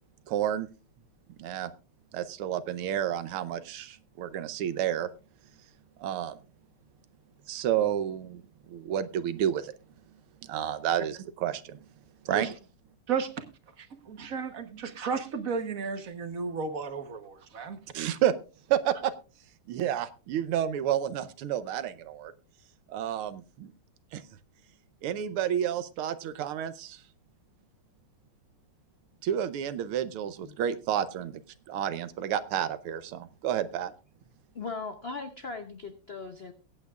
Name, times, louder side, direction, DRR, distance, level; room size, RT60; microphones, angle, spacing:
voice 1, 0.3-0.7 1.4-1.7 2.1-5.1 6.0-6.4 7.5-8.4 8.7-9.7 10.4-11.8 12.2-12.5 17.9-18.3 18.7-19.1 19.7-22.3 22.9-23.7 24.1-24.2 25.0-27.0 29.2-31.4 31.7-33.9, right 10 dB, 80° right, 1.7 m, -30 dB
voice 2, 13.1-13.4 13.8-17.8 18.1-18.2, right 5 dB, 50° right, 1.2 m, -33 dB
voice 3, 34.5-36.5, left 4 dB, 60° left, 0.6 m, -38 dB
22.5 x 8.8 x 2.4 m
omnidirectional pair, 2.4 m